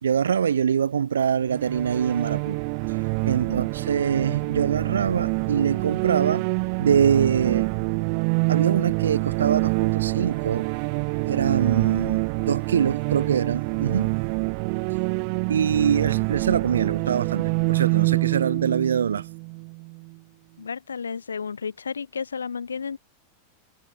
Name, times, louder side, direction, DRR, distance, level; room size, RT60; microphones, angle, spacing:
voice 1, 0.0-2.6 3.3-6.5 6.8-7.7 8.5-10.7 11.2-14.1 15.5-19.2, right 8 dB, 70° right, 2.2 m, -24 dB
sound 1, 1.5-20.1, right 40 dB or more, 45° right, 0.8 m, -26 dB
voice 2, 3.4-3.7 20.6-23.0, left 6 dB, 70° left, 4.1 m, -32 dB
figure-of-eight pair, 90°, 0 cm